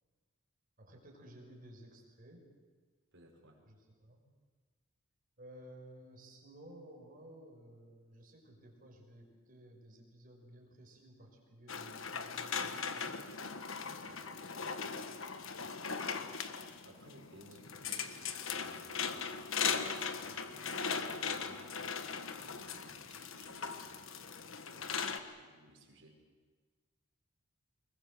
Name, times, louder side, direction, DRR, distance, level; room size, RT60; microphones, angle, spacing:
voice 1, 0.8-2.5 3.7-3.8 4.0-4.2 5.4-13.3, right 1 dB, 40° right, 0 dB, 5.8 m, -55 dB
voice 2, 3.1-3.6 14.1-14.3 15.5-15.7 16.8-26.2, right 1 dB, 55° right, 1 dB, 5.5 m, -60 dB
sound 1, 11.7-25.2, left 6 dB, 60° left, 1.4 m, -39 dB
25.0 x 22.0 x 7.7 m, 1.5 s
head